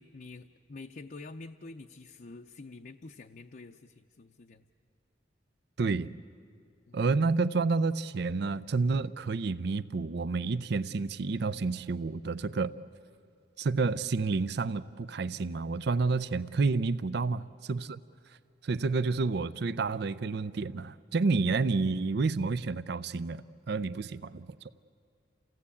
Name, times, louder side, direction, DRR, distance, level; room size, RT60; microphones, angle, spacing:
voice 1, 0.0-4.7 6.9-7.0 17.1-17.5, left 3 dB, 50° left, 4 dB, 0.6 m, -48 dB
voice 2, 5.8-6.1 6.9-12.7 13.6-18.0 18.6-24.5, right 4 dB, 60° right, 15 dB, 0.5 m, -29 dB
28.5 x 16.5 x 8.4 m, 2.5 s
head